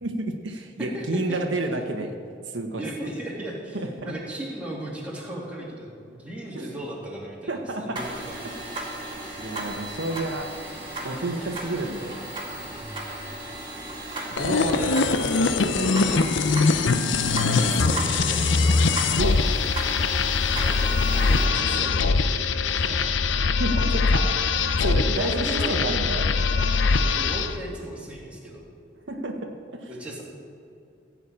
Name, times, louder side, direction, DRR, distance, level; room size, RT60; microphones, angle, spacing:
voice 1, 0.0-2.1 2.4-2.8 3.7-4.1 6.5-6.7 7.5-8.0 8.5-9.0 9.4-10.5 11.0-12.3 14.3-14.8 15.2-16.7 17.3-17.8 19.2-19.4 23.6-24.3 24.8-26.5 29.1-29.9, right 2 dB, 85° right, 3 dB, 1.2 m, -30 dB
voice 2, 0.8-1.4 2.8-3.8 4.0-8.3 8.6-8.9 12.7-13.0 14.7-15.0 17.6-18.8 20.5-21.0 21.2-23.1 24.9-25.9 26.8-28.6 29.9-30.2, right 1 dB, 5° right, -5 dB, 2.7 m, -36 dB
sound 1, 8.0-21.5, right 1 dB, 25° right, 2.4 m, -35 dB
sound 2, 14.4-27.6, left 4 dB, 80° left, 0.6 m, -22 dB
15.5 x 5.8 x 8.7 m, 2.4 s
head